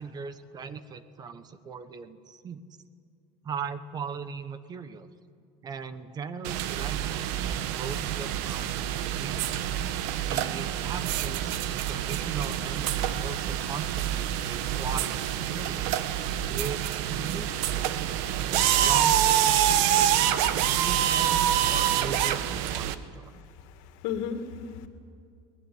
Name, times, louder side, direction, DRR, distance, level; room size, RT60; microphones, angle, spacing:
voice 1, 0.0-2.6 3.4-5.1 5.6-9.5 10.2-15.9 16.5-16.8 17.1-23.5, right 5 dB, 30° right, 12 dB, 1.2 m, -39 dB
sound 1, 6.4-22.9, right 11 dB, 80° right, 1.3 m, -27 dB
voice 2, 23.3-24.9, left 7 dB, 80° left, 7 dB, 2.4 m, -35 dB
23.5 x 19.5 x 9.6 m, 2.3 s
cardioid pair, 140°, 13 cm